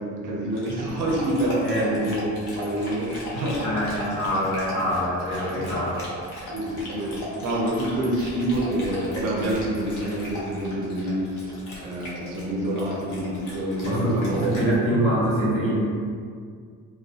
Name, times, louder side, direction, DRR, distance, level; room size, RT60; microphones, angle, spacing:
voice 1, 0.0-2.3 2.5-3.9 6.5-11.6 11.8-14.6, right 1 dB, 90° right, -3 dB, 0.6 m, -27 dB
Dog, 0.5-14.8, left 1 dB, 85° left, 0.7 m, -37 dB
voice 2, 3.6-6.0 13.8-15.8, equal, 20° left, -9 dB, 1.4 m, -24 dB
2.6 x 2.2 x 2.4 m, 2.1 s
cardioid pair, 90°, 30 cm